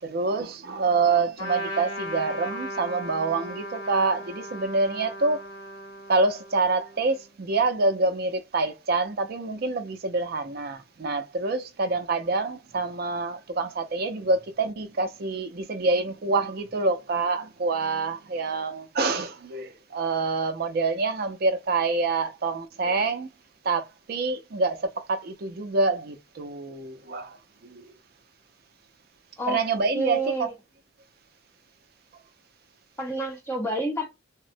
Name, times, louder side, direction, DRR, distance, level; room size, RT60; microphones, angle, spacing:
voice 1, 0.0-5.4 6.1-23.3 23.6-27.4 27.6-27.8 29.5-30.5, right 3 dB, 50° right, 0.5 m, -26 dB
Trumpet, 1.4-7.2, equal, 85° left, 1.9 m, -37 dB
voice 2, 29.9-30.5 33.0-34.1, right 2 dB, 15° left, 0.8 m, -28 dB
3.6 x 2.0 x 2.5 m
head